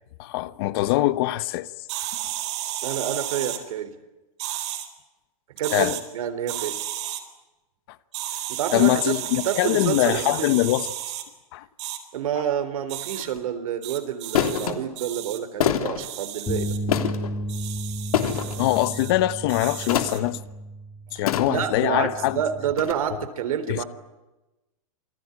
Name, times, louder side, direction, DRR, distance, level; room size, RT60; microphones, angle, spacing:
voice 1, 0.2-1.7 5.7-6.0 8.7-10.9 11.5-11.7 18.6-20.4 21.1-22.4 23.7-23.8, left 16 dB, 40° left, 1.0 m, -23 dB
sound 1, 1.9-3.6 4.4-4.9 5.5-6.0 6.5-7.2 8.1-11.2 11.8-12.0 12.9-13.2 13.8-14.7 15.0-15.4 16.0-16.8 17.5-19.1 19.5-20.2, right 13 dB, 50° right, 4.1 m, -33 dB
voice 2, 2.8-3.9 5.6-6.8 8.5-9.2 9.4-10.5 12.1-16.7 21.1-23.9, right 9 dB, 70° right, 3.9 m, -28 dB
sound 2, 13.2-13.4 14.3-14.7 15.6-16.0 16.9-17.3 18.1-18.6 19.9-20.3 21.3-21.8 22.8-22.9, left 9 dB, 85° left, 3.3 m, -25 dB
sound 3, 16.5-22.7, equal, 10° left, 2.8 m, -33 dB
28.0 x 20.0 x 9.8 m
supercardioid pair, 165°, 18 cm